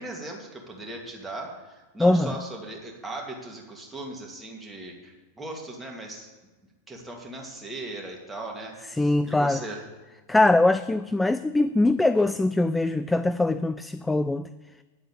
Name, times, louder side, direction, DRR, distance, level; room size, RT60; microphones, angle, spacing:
voice 1, 0.0-6.3 6.9-9.9, right 2 dB, 10° right, 2.7 m, -38 dB
voice 2, 2.0-2.3 9.0-9.6 10.3-14.5, left 2 dB, 5° left, 0.3 m, -22 dB
9.6 x 7.9 x 8.5 m
figure-of-eight pair, 90°, 0 cm